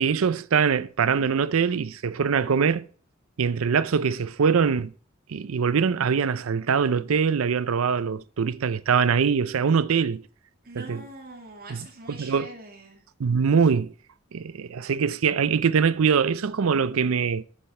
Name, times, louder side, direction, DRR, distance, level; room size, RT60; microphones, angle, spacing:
voice 1, 0.0-2.9 3.4-4.9 5.3-10.2 10.7-11.0 11.7-12.5 13.2-13.9 14.3-17.4, right 6 dB, 90° right, 0.5 m, -23 dB
voice 2, 10.6-13.0, right 2 dB, 50° right, 2.3 m, -43 dB
7.4 x 6.7 x 5.5 m
head